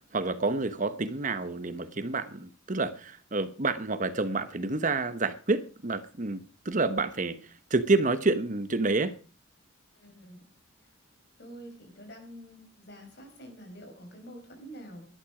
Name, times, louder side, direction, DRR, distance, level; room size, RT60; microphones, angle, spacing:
voice 1, 0.1-7.4 7.7-9.2, right 3 dB, 40° right, 1.0 m, -28 dB
voice 2, 9.9-10.5 11.4-15.1, equal, 55° left, 5.5 m, -47 dB
17.5 x 12.0 x 5.0 m
head